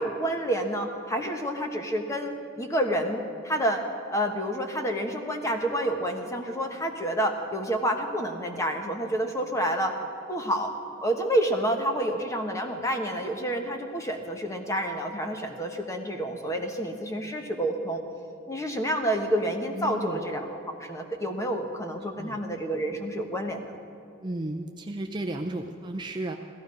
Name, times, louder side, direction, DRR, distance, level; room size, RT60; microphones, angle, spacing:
voice 1, 0.0-10.0 10.3-10.7 11.0-18.0 18.5-23.8, right 1 dB, 15° left, 4 dB, 1.2 m, -29 dB
voice 2, 19.7-20.3 22.2-22.4 24.2-26.4, right 1 dB, 20° right, 3 dB, 0.5 m, -33 dB
16.0 x 14.5 x 5.3 m, 2.7 s
head